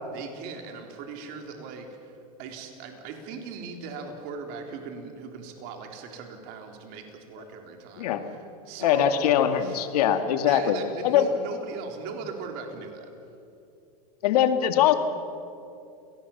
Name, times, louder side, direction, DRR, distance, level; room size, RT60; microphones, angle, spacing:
voice 1, 0.1-9.9 10.4-13.1, right 5 dB, 50° right, 3 dB, 3.8 m, -39 dB
voice 2, 8.8-10.8 11.0-11.3 14.2-14.9, left 10 dB, 70° left, 8 dB, 2.1 m, -22 dB
29.5 x 19.0 x 7.3 m, 2.7 s
supercardioid pair, 125°, 20 cm